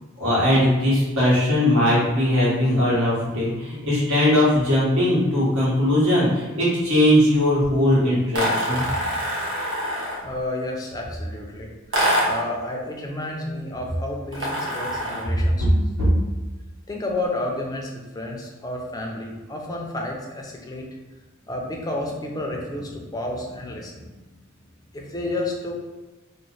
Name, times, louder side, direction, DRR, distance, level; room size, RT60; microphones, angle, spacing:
voice 1, 0.2-8.8 16.0-16.1, left 1 dB, 80° right, -8 dB, 1.5 m, -19 dB
sound 1, 8.3-10.3 11.9-12.5 14.3-15.4, equal, 60° right, 0.9 m, -25 dB
voice 2, 10.2-15.7 16.1-16.2 16.9-20.9 21.5-24.3 24.9-25.8, left 1 dB, 20° left, 0 dB, 0.4 m, -31 dB
3.0 x 2.0 x 3.9 m, 1.2 s
head